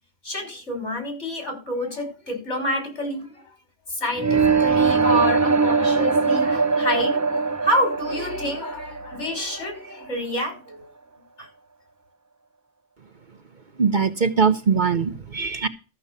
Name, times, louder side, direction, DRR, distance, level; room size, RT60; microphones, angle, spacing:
voice 1, 0.2-3.4 3.9-10.8 11.4-11.5, equal, 70° left, 6.3 m, -28 dB
sound 1, 4.2-10.1, right 4 dB, 25° right, 0.4 m, -22 dB
voice 2, 13.8-15.7, right 5 dB, 45° right, 0.9 m, -21 dB
14.0 x 6.9 x 6.7 m
omnidirectional pair, 1.2 m